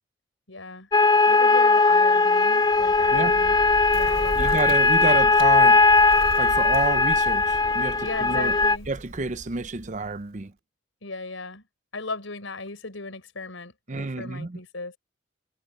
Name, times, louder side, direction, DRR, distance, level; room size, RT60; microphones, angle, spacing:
voice 1, 0.5-0.9 1.3-3.6 3.9-4.6 8.0-8.9 11.0-11.6 11.9-15.0, left 3 dB, 85° left, 4.5 m, -36 dB
sound 1, 0.9-8.8, left 3 dB, 20° left, 0.4 m, -19 dB
Bird, 2.6-10.4, right 1 dB, 85° right, 4.2 m, -38 dB
voice 2, 4.4-5.8 6.4-8.6 8.9-10.5 13.9-14.6, right 3 dB, 40° right, 0.7 m, -29 dB
head